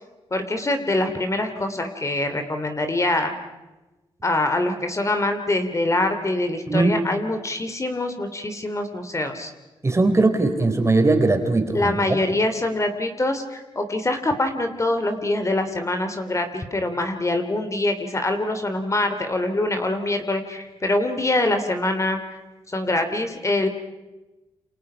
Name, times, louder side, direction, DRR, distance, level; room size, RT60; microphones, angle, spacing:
voice 1, 0.3-3.3 4.2-9.5 11.7-22.2 22.7-23.7, left 2 dB, 25° left, 7 dB, 2.9 m, -24 dB
voice 2, 9.8-12.2, right 2 dB, 25° right, 6 dB, 3.9 m, -20 dB
28.5 x 27.0 x 5.7 m, 1.1 s
cardioid pair, 70°, 11 cm